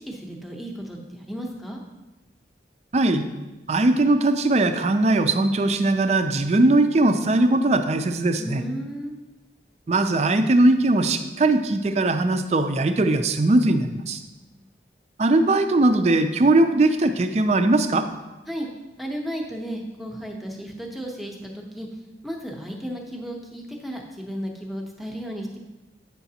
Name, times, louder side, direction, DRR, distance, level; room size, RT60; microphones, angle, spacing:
voice 1, 0.0-1.8 8.4-9.1 14.4-14.7 18.5-18.7 19.0-21.9 22.2-25.6, equal, ahead, 0 dB, 0.7 m, -34 dB
voice 2, 2.9-3.3 3.7-8.6 9.9-14.2 15.2-18.1, right 2 dB, 35° right, 9 dB, 0.4 m, -20 dB
8.1 x 5.7 x 2.8 m, 1.1 s
head